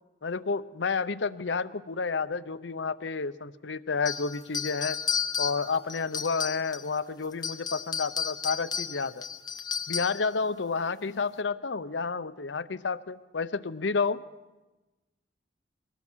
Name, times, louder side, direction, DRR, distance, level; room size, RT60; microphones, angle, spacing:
voice 1, 0.2-5.0 5.4-9.2 9.9-14.2, left 4 dB, 80° left, 13 dB, 0.7 m, -30 dB
sound 1, 4.1-7.0 7.3-10.3, left 6 dB, 20° left, 0.7 m, -33 dB
23.0 x 19.0 x 6.3 m, 1.1 s
head